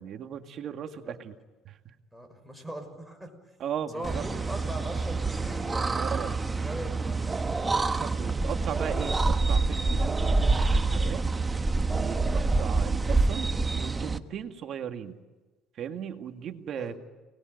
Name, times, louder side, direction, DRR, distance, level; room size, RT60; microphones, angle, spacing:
voice 1, 0.0-1.3 1.7-1.9 3.6-4.3 5.9-6.4 7.6-11.3 11.9-15.2 15.7-17.0, right 8 dB, 50° right, 6 dB, 2.0 m, -37 dB
voice 2, 2.1-3.3 3.9-6.3 6.6-7.3 12.4-12.5 14.3-14.4 16.8-17.0, right 1 dB, ahead, 7 dB, 5.9 m, -41 dB
Wind instrument woodwind instrument, 3.9-11.0, left 1 dB, 20° left, 5.3 m, -53 dB
sound 1, 4.0-14.2, right 3 dB, 15° right, 1.2 m, -27 dB
29.5 x 20.5 x 9.3 m, 1.2 s
cardioid pair, 120°, 0 cm